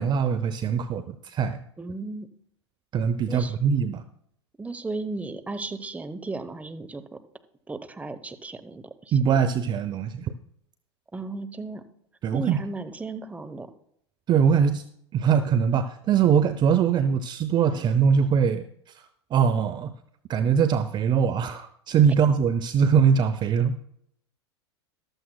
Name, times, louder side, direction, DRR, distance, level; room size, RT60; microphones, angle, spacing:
voice 1, 0.0-1.6 2.9-4.0 9.1-10.3 12.2-12.6 14.3-14.8 15.1-18.6 19.0-19.1 19.3-19.9 20.3-23.8, right 7 dB, 30° right, 12 dB, 0.6 m, -22 dB
voice 2, 1.8-2.3 3.3-3.6 4.6-7.2 7.7-9.2 11.1-11.8 12.3-13.7, right 3 dB, 10° right, 9 dB, 0.9 m, -35 dB
14.5 x 12.5 x 2.3 m, 0.71 s
hypercardioid pair, 90°, 14 cm